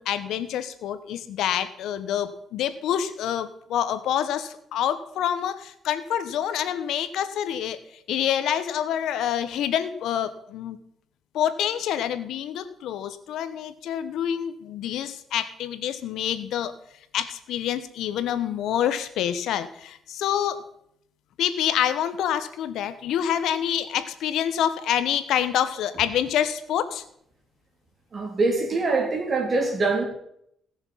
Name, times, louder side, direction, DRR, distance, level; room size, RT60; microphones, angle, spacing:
voice 1, 0.0-7.8 8.1-10.8 11.3-16.7 17.1-20.6 21.4-27.0, left 10 dB, 80° left, 12 dB, 1.0 m, -27 dB
voice 2, 28.1-30.0, right 3 dB, 40° right, 3 dB, 3.4 m, -24 dB
16.5 x 6.8 x 5.6 m, 0.72 s
cardioid pair, 90°, 0 cm